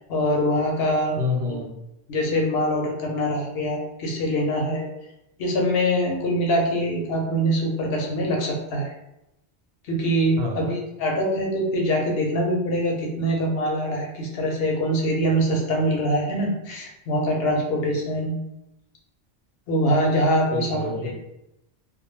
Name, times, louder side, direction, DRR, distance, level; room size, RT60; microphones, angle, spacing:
voice 1, 0.1-1.2 1.5-1.6 2.1-4.9 5.4-8.9 9.9-18.4 19.7-20.9, equal, 65° left, 0 dB, 0.8 m, -23 dB
voice 2, 1.2-1.7 10.4-10.7 20.5-21.1, left 3 dB, 70° right, 1 dB, 0.8 m, -28 dB
2.2 x 2.1 x 3.0 m, 0.86 s
omnidirectional pair, 1.1 m